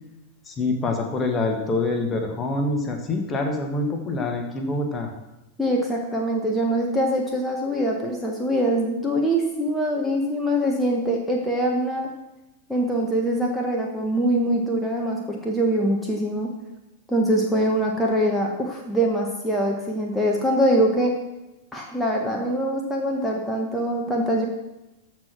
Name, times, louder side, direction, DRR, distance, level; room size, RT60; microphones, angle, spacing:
voice 1, 0.4-5.1, left 2 dB, 20° left, 3 dB, 1.7 m, -25 dB
voice 2, 5.6-12.1 12.7-16.5 17.1-21.2 21.7-24.5, right 1 dB, 5° left, -1 dB, 1.5 m, -23 dB
14.0 x 4.8 x 6.2 m, 0.97 s
figure-of-eight pair, 90°, 0 cm